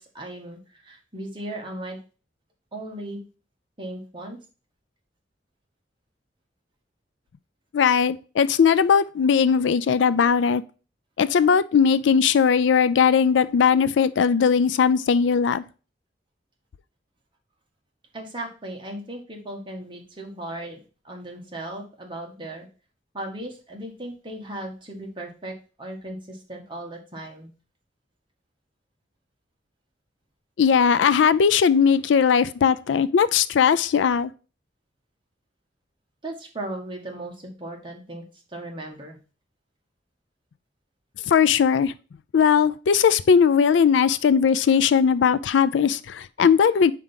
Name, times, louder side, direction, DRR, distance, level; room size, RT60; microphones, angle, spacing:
voice 1, 0.0-2.0 2.7-3.2 3.8-4.4 18.1-20.8 21.0-22.7 23.1-27.5 36.2-38.2 38.5-39.2, right 1 dB, 25° right, 1.5 m, -36 dB
voice 2, 7.7-10.6 11.2-15.6 30.6-34.3 41.3-41.9 42.3-46.9, left 6 dB, 75° left, 0.4 m, -19 dB
5.0 x 4.5 x 5.6 m
head